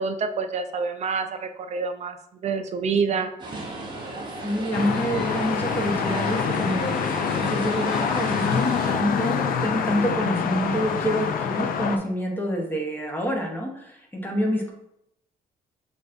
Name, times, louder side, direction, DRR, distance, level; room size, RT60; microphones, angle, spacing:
voice 1, 0.0-2.2 2.4-3.3 4.8-4.9, right 5 dB, 45° right, 8 dB, 0.4 m, -27 dB
voice 2, 2.9-3.2 4.4-14.7, equal, 10° left, 1 dB, 0.9 m, -27 dB
sound 1, 3.4-8.9, right 2 dB, 30° right, 0.8 m, -35 dB
sound 2, 4.7-12.0, left 7 dB, 60° left, 0.4 m, -26 dB
6.3 x 2.5 x 2.6 m, 0.79 s
cardioid pair, 105°, 16 cm